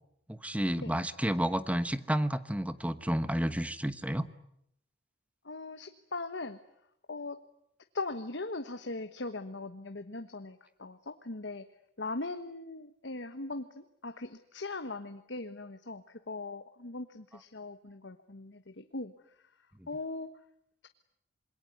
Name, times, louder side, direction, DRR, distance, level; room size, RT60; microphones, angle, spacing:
voice 1, 0.3-4.3, right 1 dB, 5° right, 13 dB, 1.1 m, -31 dB
voice 2, 5.4-6.6 7.1-7.4 7.9-11.7 12.0-19.1 19.4-19.5 19.9-20.4, left 3 dB, 65° left, 8 dB, 1.3 m, -40 dB
27.0 x 22.0 x 9.5 m, 0.75 s
head